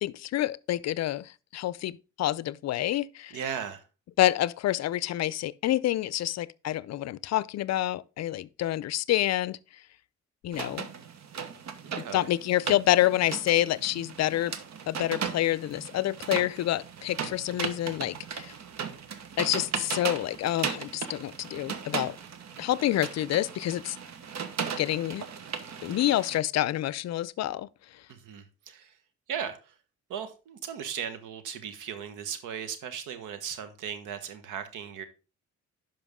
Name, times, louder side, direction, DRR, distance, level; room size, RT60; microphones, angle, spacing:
voice 1, 0.0-3.4 4.2-9.6 10.4-10.9 12.1-14.5 14.9-18.5 19.4-22.2 22.6-24.0 24.8-25.2 25.8-27.7, left 14 dB, 60° left, 0.5 m, -28 dB
voice 2, 3.3-3.8 11.8-12.3 28.1-29.0 29.3-29.7 30.1-35.1, right 8 dB, 90° right, 1.3 m, -37 dB
sound 1, 10.5-26.4, right 7 dB, 60° right, 1.2 m, -37 dB
11.0 x 5.5 x 3.6 m
cardioid pair, 90°, 30 cm